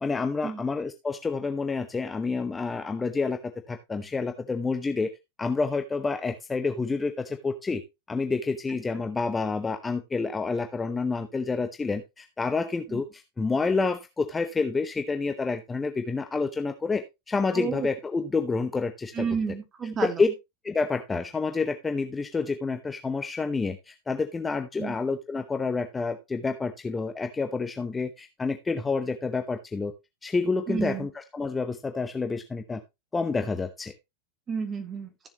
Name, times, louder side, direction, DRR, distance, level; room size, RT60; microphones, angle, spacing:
voice 1, 0.0-3.4 3.7-5.1 5.4-7.8 8.1-19.3 20.0-20.3 20.6-29.9 30.2-32.8 33.1-33.9, left 4 dB, 15° left, 8 dB, 0.9 m, -28 dB
voice 2, 17.5-17.9 19.1-20.2 24.8-25.0 30.7-31.1 34.5-35.1, right 6 dB, 20° right, 7 dB, 2.7 m, -31 dB
14.5 x 7.2 x 3.0 m, 0.23 s
figure-of-eight pair, 90°, 0 cm